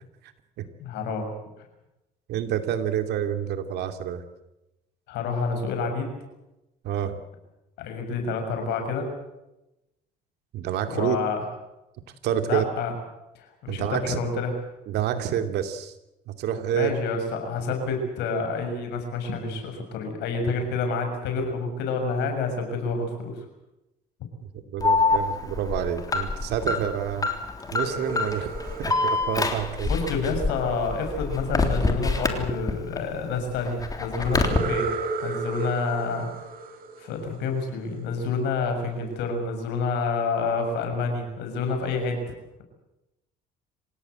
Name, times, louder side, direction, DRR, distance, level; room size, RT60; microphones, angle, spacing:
voice 1, 0.8-1.3 5.1-6.1 7.8-9.1 10.9-11.4 12.5-12.9 13.4-14.5 16.7-23.4 29.9-34.9 35.2-36.3 37.0-42.2, left 4 dB, 85° left, 5 dB, 6.9 m, -28 dB
voice 2, 2.3-4.2 6.8-7.2 10.5-11.2 12.2-12.6 13.7-14.2 14.9-15.9 16.3-16.9 24.7-27.3 27.7-29.9, right 10 dB, 80° right, 8 dB, 2.7 m, -28 dB
Alarm, 24.8-33.0 33.4-34.6, left 3 dB, 20° left, 3.4 m, -26 dB
sound 1, 27.6-30.6 34.2-37.9, right 4 dB, 60° right, 3.7 m, -34 dB
27.0 x 18.0 x 8.0 m, 0.95 s
cardioid pair, 110°, 17 cm